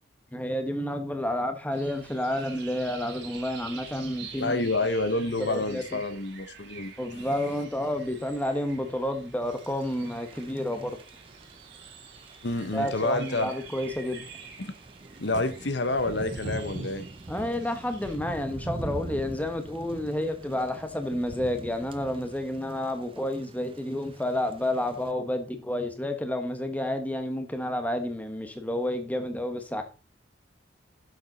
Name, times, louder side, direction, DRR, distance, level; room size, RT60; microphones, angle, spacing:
voice 1, 0.3-4.7 5.4-6.0 7.0-11.0 12.7-14.2 17.3-29.8, left 1 dB, 5° left, 1.2 m, -30 dB
sound 1, 1.7-18.2, right 6 dB, 55° right, 2.4 m, -48 dB
voice 2, 4.4-6.9 12.4-13.5 14.6-14.7 15.2-17.1, left 2 dB, 55° left, 0.9 m, -28 dB
Thunder / Rain, 9.5-25.1, right 2 dB, 25° right, 0.5 m, -43 dB
11.0 x 7.2 x 4.0 m
head